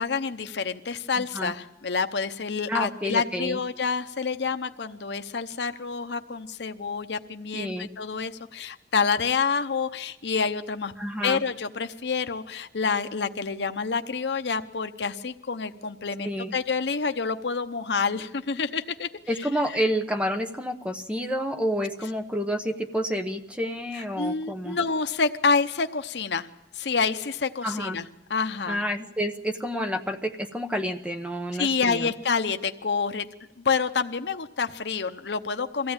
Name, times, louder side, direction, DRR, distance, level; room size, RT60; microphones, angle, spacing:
voice 1, 0.0-10.9 11.2-19.1 23.9-26.5 26.7-28.8 31.6-33.3 33.6-35.9, left 5 dB, 70° left, 8 dB, 0.8 m, -28 dB
voice 2, 2.7-3.6 7.5-7.9 11.0-11.4 16.2-16.5 19.3-24.8 27.6-28.0 28.7-32.1, equal, 5° right, 5 dB, 0.9 m, -29 dB
23.0 x 15.5 x 8.8 m, 0.94 s
head